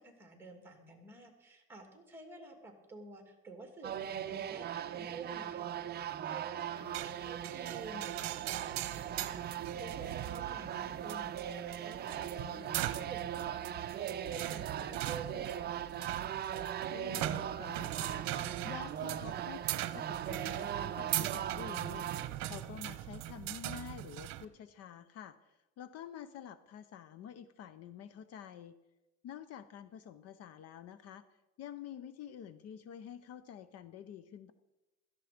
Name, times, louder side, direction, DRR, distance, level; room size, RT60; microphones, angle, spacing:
voice 1, 0.0-15.9, right 3 dB, 5° right, 4 dB, 2.6 m, -51 dB
sound 1, 3.8-22.3, right 10 dB, 35° right, 0.6 m, -39 dB
sound 2, 6.9-24.5, right 14 dB, 60° right, 0.9 m, -41 dB
voice 2, 12.4-12.8 16.9-19.6 19.9-28.8 29.2-31.2 31.6-34.5, left 9 dB, 55° left, 13 dB, 0.7 m, -49 dB
16.5 x 13.5 x 5.1 m, 1.0 s
cardioid pair, 155°, 30 cm